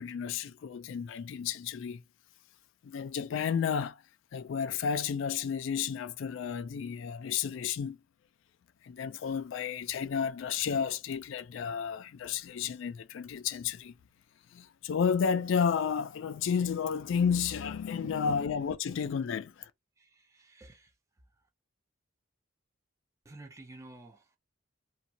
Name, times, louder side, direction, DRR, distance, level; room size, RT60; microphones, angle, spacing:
voice 1, 0.0-2.0 2.8-4.0 4.3-8.0 8.8-13.9 14.5-19.7, left 7 dB, 65° left, 0.3 m, -32 dB
voice 2, 18.0-18.3 20.0-20.9 23.3-24.4, right 2 dB, 15° right, 0.3 m, -50 dB
2.6 x 2.2 x 2.7 m
head